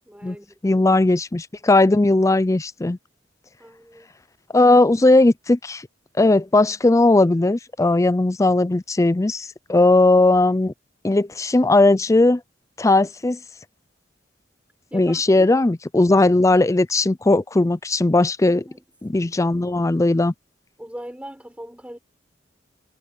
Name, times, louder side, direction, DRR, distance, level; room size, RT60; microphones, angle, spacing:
voice 1, 0.1-0.8 3.6-4.1 14.9-15.5 18.5-18.8 20.8-22.0, equal, 5° right, 5.8 m, -39 dB
voice 2, 0.6-3.0 4.5-5.8 6.2-10.7 11.0-12.4 12.8-13.4 14.9-18.6 19.0-20.3, left 2 dB, 15° left, 0.4 m, -17 dB
head